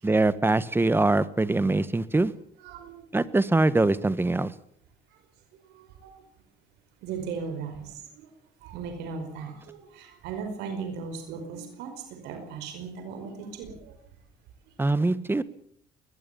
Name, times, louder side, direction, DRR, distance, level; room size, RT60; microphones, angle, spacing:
voice 1, 0.0-2.3 3.1-4.5 14.8-15.4, right 2 dB, 15° right, 16 dB, 1.4 m, -23 dB
voice 2, 2.6-2.9 6.0-6.1 7.0-7.8 8.1-8.3 8.6-11.9 12.2-13.9, right 5 dB, 90° right, 6 dB, 5.2 m, -37 dB
21.5 x 21.0 x 7.1 m, 0.64 s
cardioid pair, 110°, 17 cm